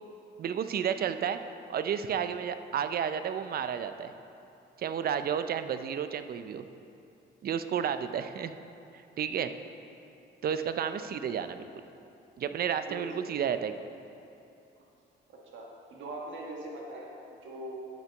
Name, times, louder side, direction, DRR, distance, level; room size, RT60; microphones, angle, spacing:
voice 1, 0.4-1.4 1.7-4.1 4.8-6.7 7.4-8.6 9.2-9.5 10.4-11.7 12.4-13.7, right 8 dB, 50° right, 10 dB, 0.5 m, -31 dB
voice 2, 15.3-17.7, right 1 dB, 70° right, -2 dB, 1.4 m, -42 dB
11.5 x 6.0 x 4.5 m, 2.7 s
cardioid pair, 90°, 20 cm